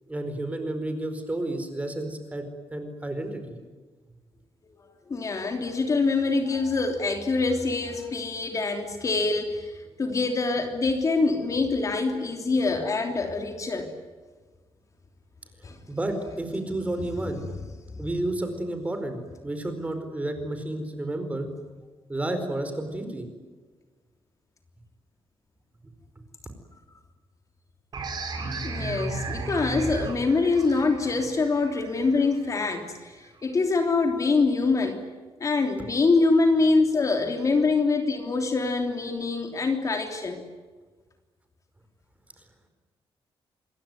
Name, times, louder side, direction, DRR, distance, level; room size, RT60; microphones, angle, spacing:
voice 1, 0.1-3.6 15.9-17.4 18.0-21.5 22.1-23.3, right 1 dB, 15° right, 7 dB, 4.6 m, -31 dB
voice 2, 5.1-13.9 15.6-15.8 28.6-35.0 35.4-40.4, left 3 dB, 35° left, 5 dB, 3.2 m, -25 dB
sound 1, 27.9-33.3, right 3 dB, 50° right, 5.9 m, -35 dB
27.0 x 22.0 x 9.5 m, 1.4 s
wide cardioid pair, 150°, 10 cm